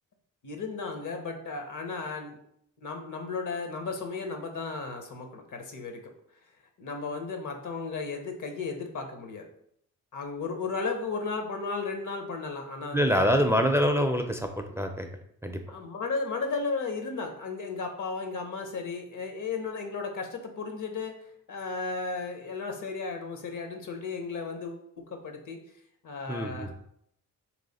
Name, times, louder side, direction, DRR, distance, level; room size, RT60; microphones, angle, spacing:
voice 1, 0.4-2.4 2.8-6.0 6.8-9.5 10.1-13.6 15.7-21.1 21.5-25.6 26.0-26.7, left 4 dB, 60° left, 4 dB, 1.0 m, -34 dB
voice 2, 12.9-15.1 15.4-15.6 26.3-26.7, equal, 10° right, 5 dB, 0.4 m, -25 dB
3.3 x 3.2 x 4.1 m, 0.69 s
cardioid pair, 65°, 34 cm